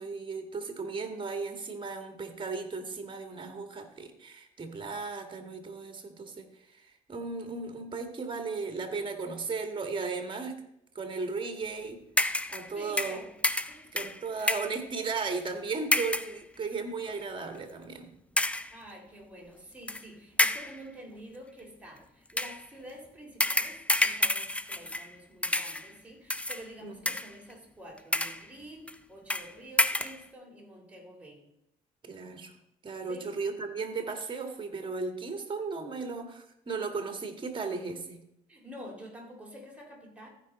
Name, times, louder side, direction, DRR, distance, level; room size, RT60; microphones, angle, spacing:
voice 1, 0.0-10.6 11.0-12.0 12.5-13.2 13.9-18.1 26.8-27.0 32.0-32.5 32.8-38.2, right 4 dB, 30° right, 6 dB, 1.8 m, -36 dB
sound 1, 12.2-12.7 13.0-14.8 15.9-16.4 17.1-17.2 18.4-18.8 19.9-20.0 20.4-20.8 22.3-22.6 23.4-25.1 25.4-25.9 26.3-26.6 27.0-27.5 28.0-28.5 28.9-29.0 29.3-29.5 29.8-30.2, left 1 dB, 10° left, 0.5 m, -29 dB
voice 2, 12.7-13.4 13.7-13.9 18.7-31.4 33.1-33.3 38.5-40.3, equal, 10° right, -1 dB, 3.3 m, -48 dB
14.5 x 5.1 x 4.2 m, 0.79 s
supercardioid pair, 80°, 15 cm